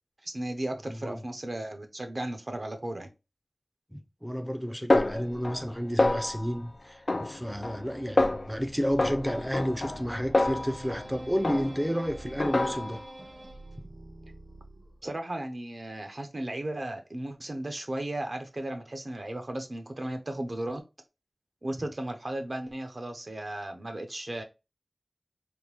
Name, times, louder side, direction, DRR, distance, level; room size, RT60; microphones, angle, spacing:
voice 1, 0.2-3.1 15.0-20.8 21.6-24.4, right 1 dB, 55° right, 0.7 m, -35 dB
voice 2, 0.8-1.2 3.9-13.0 13.8-13.9 21.8-21.9, equal, 5° right, 0.5 m, -31 dB
Snare drum, 4.9-5.7 6.0-6.6 7.1-7.9 8.2-8.6 9.0-11.1 11.4-12.0 12.4-13.1, left 2 dB, 60° left, 0.3 m, -27 dB
Musical instrument, 7.4-13.1, right 2 dB, 80° left, 0.8 m, -53 dB
sound 1, 8.9-15.1, right 1 dB, 75° right, 1.4 m, -46 dB
3.5 x 2.2 x 3.0 m
wide cardioid pair, 65°, 0 cm